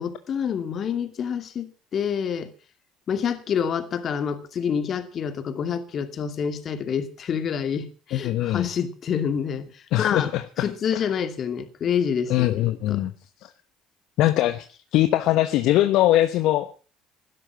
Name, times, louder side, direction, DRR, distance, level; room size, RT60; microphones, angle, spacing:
voice 1, 0.0-2.5 3.1-10.3 10.6-13.0, left 7 dB, 50° left, 2.5 m, -27 dB
voice 2, 8.1-8.7 9.9-11.0 12.3-13.1 13.4-13.5 14.2-14.7 14.9-16.7, left 14 dB, 65° left, 1.1 m, -22 dB
16.0 x 12.5 x 6.0 m
hypercardioid pair, 55°, 0 cm